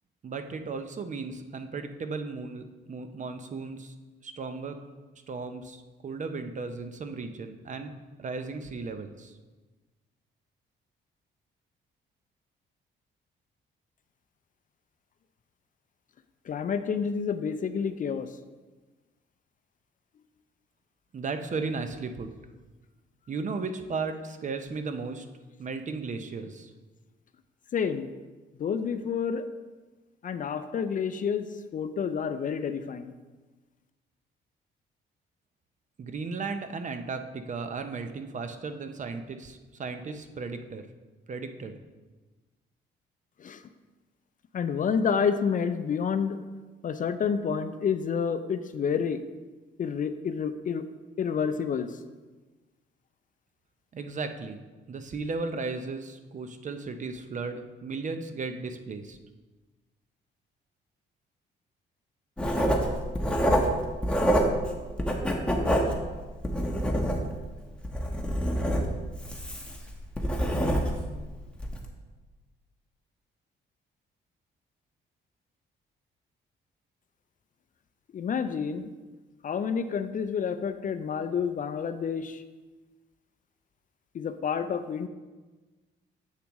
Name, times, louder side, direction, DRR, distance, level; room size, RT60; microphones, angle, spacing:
voice 1, 0.2-3.9 4.2-4.8 5.3-7.9 8.2-9.3 21.1-22.3 23.3-25.3 25.6-26.7 36.0-40.9 41.3-41.8 53.9-59.2, right 4 dB, 40° right, 8 dB, 0.6 m, -35 dB
voice 2, 16.5-18.4 27.7-28.1 28.6-29.5 30.2-33.1 43.4-43.6 44.5-46.4 46.8-49.2 49.8-50.9 51.2-52.0 78.1-78.9 79.4-82.4 84.1-85.1, left 6 dB, 40° left, 10 dB, 0.4 m, -29 dB
Writing, 62.4-64.7 65.0-67.5 67.8-71.1 71.5-71.8, equal, 5° left, 1.0 m, -26 dB
7.4 x 6.8 x 3.0 m, 1.3 s
cardioid pair, 90°, 20 cm